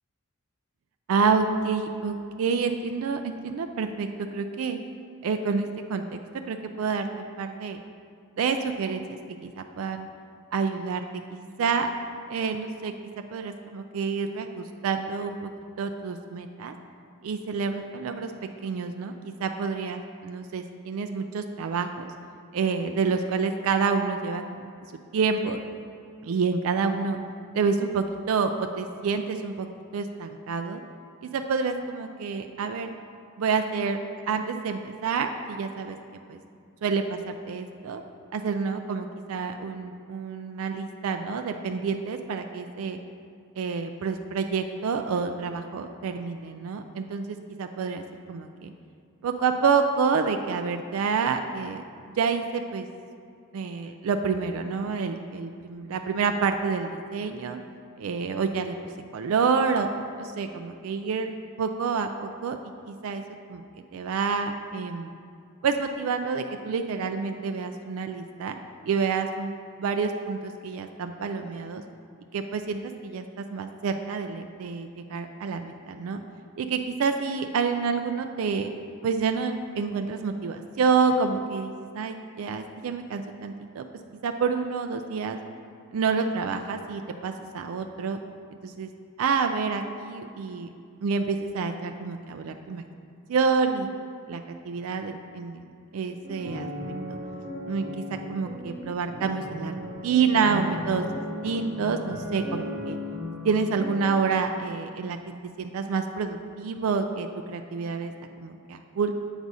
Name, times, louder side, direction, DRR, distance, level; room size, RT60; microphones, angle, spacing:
voice 1, 1.1-4.8 5.2-6.2 6.5-7.8 8.4-10.1 10.5-11.9 12.3-12.9 13.3-15.5 15.8-16.7 17.2-18.3 18.6-22.1 22.5-24.7 25.1-25.6 26.2-27.2 27.5-29.7 29.9-30.8 31.2-32.9 33.4-34.0 34.3-36.0 36.3-36.4 36.8-38.0 38.3-43.0 43.6-48.0 48.3-48.7 49.2-51.8 52.2-52.9 53.5-57.6 58.0-58.7 59.1-59.9 60.2-61.3 61.6-62.1 62.4-62.6 62.9-63.2 63.5-63.6 63.9-65.1 65.6-68.6 68.8-69.5 69.8-71.8 72.3-76.2 76.6-78.7 79.0-83.8 84.2-85.4 85.9-88.2 88.6-88.9 89.2-90.7 91.0-92.8 93.3-93.9 94.3-95.6 95.9-96.7 97.1-97.2 97.7-98.0 98.3-99.7 100.0-101.1 101.4-103.0 103.4-105.2 105.6-108.1 108.4-109.1, right 5 dB, 70° right, 6 dB, 0.3 m, -28 dB
sound 1, 96.2-104.0, left 1 dB, 25° right, 1.7 m, -36 dB
8.0 x 4.1 x 4.7 m, 2.4 s
head